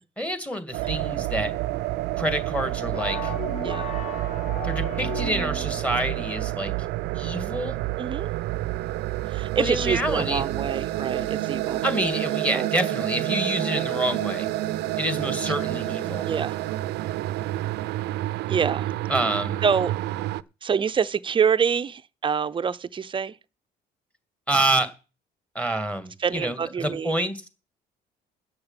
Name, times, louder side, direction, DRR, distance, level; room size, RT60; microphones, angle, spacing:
voice 1, 0.2-1.5 2.2-3.3 4.6-6.7 7.1-7.8 9.6-10.5 11.8-14.5 15.0-16.2 19.1-19.6 24.5-24.9 25.5-27.4, right 1 dB, 5° left, 2.3 m, -27 dB
sound 1, 0.7-20.4, right 16 dB, 80° right, 0.6 m, -29 dB
sound 2, 2.9-5.8, left 5 dB, 55° left, 3.7 m, -36 dB
voice 2, 3.6-3.9 8.0-8.3 9.3-11.8 12.5-12.7 13.6-13.9 16.3-16.6 18.5-18.9 19.6-19.9 20.6-23.3 26.2-27.2, right 6 dB, 30° right, 0.7 m, -26 dB
9.8 x 6.6 x 8.9 m
cardioid pair, 110°, 17 cm